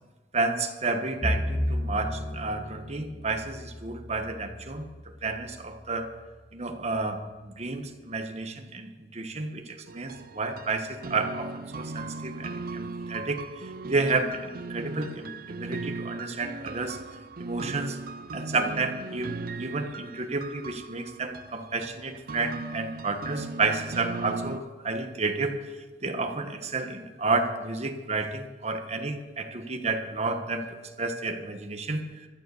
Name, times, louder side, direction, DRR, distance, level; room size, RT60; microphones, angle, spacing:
voice 1, 0.3-4.9 5.2-6.1 6.5-17.0 17.4-18.0 18.3-25.6 26.0-30.7 31.0-32.0, right 3 dB, 40° right, 6 dB, 1.3 m, -31 dB
Bowed string instrument, 1.2-5.6, left 1 dB, ahead, 2.6 m, -33 dB
sound 1, 9.9-24.6, right 3 dB, 55° right, 0.6 m, -38 dB
13.5 x 9.3 x 7.1 m, 1.2 s
head